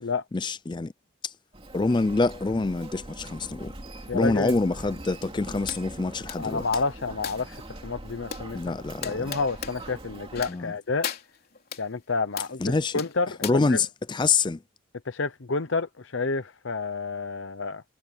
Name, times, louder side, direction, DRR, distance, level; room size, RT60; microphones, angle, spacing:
voice 1, 0.3-0.9 1.2-1.3 1.7-3.7 4.1-6.6 8.5-9.3 10.5-10.7 12.6-13.0 13.4-14.6, left 3 dB, 20° left, 0.3 m, -26 dB
Human voice, 1.5-10.5, right 1 dB, 25° right, 2.8 m, -42 dB
voice 2, 4.1-4.6 6.4-8.6 9.0-11.1 11.8-13.8 15.1-17.8, left 4 dB, 60° left, 0.8 m, -29 dB
sound 1, 5.7-5.8 6.3-7.6 8.3-8.5 9.0-9.8 10.3-10.7 11.0-11.8 12.4-12.6 13.0-13.5, left 8 dB, 45° left, 3.7 m, -36 dB
head